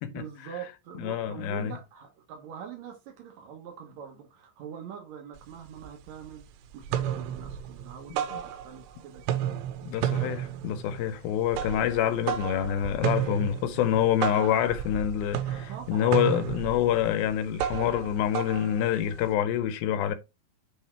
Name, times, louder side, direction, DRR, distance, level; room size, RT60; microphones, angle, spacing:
voice 1, 0.0-6.5 6.7-9.5 15.7-16.4, right 8 dB, 70° right, 1.7 m, -43 dB
voice 2, 1.0-1.8 9.9-20.1, left 10 dB, 80° left, 2.2 m, -27 dB
sound 1, 5.4-5.5 5.8-6.4 6.7-8.9 9.2-19.3, right 10 dB, 90° right, 2.8 m, -32 dB
8.0 x 3.5 x 4.5 m
omnidirectional pair, 4.7 m